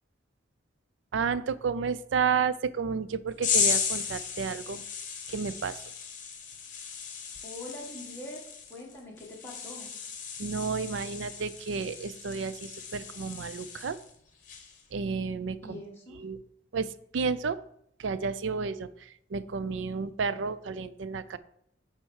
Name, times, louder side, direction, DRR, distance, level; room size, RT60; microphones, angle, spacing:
voice 1, 1.1-4.8 5.3-5.8 10.4-14.0 14.9-15.8 16.2-16.4 16.7-17.6 18.0-21.4, right 5 dB, 85° right, 15 dB, 0.4 m, -31 dB
sound 1, 3.4-14.1 14.4-14.8, left 6 dB, 45° left, 1.2 m, -35 dB
voice 2, 7.4-8.4 8.7-9.9 15.6-16.2, left 1 dB, 10° left, -4 dB, 1.6 m, -43 dB
7.6 x 4.4 x 4.7 m, 0.71 s
head